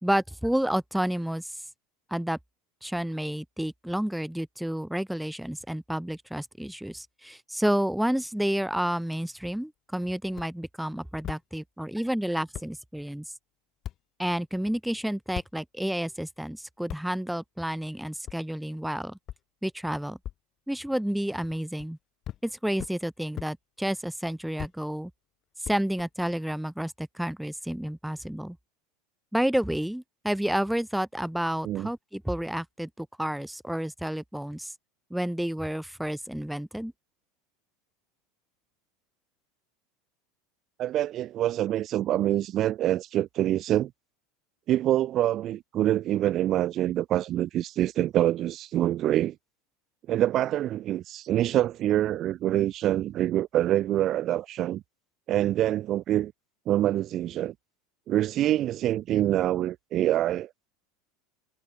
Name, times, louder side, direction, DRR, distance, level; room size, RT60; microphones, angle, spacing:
voice 1, 0.0-1.5 2.1-2.4 2.8-13.2 14.2-19.2 19.6-20.2 20.7-22.0 22.4-25.1 25.6-28.6 29.3-34.7 35.1-36.9, equal, ahead, 2.7 m, -30 dB
sound 1, 10.3-10.5 11.2-11.4 12.2-12.3 12.5-12.7 13.8-14.0 15.3-15.5 16.9-17.0 18.3-18.4 19.3-19.4 20.2-20.4 21.5-21.9 22.2-22.4 22.8-22.9 23.4-23.5 24.6-24.7 25.6-26.3, left 11 dB, 45° left, 2.5 m, -38 dB
voice 2, 40.8-43.9 44.7-49.3 50.1-54.8 55.3-56.3 56.7-57.5 58.1-60.5, right 13 dB, 45° right, 1.4 m, -25 dB
hypercardioid pair, 90°, 0 cm